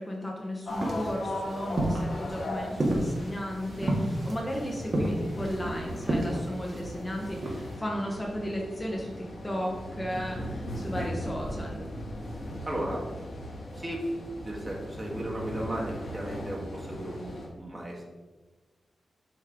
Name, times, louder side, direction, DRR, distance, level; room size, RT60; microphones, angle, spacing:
voice 1, 0.0-11.8, equal, 20° left, -1 dB, 1.0 m, -34 dB
sound 1, 0.7-17.5, equal, 65° left, 1.5 m, -38 dB
sound 2, 0.7-7.8, right 1 dB, 45° right, 1.8 m, -31 dB
voice 2, 12.6-13.0 13.7-14.0 14.4-18.0, right 1 dB, 25° right, -3 dB, 1.8 m, -35 dB
6.6 x 3.3 x 5.0 m, 1.2 s
cardioid pair, 80°, 0 cm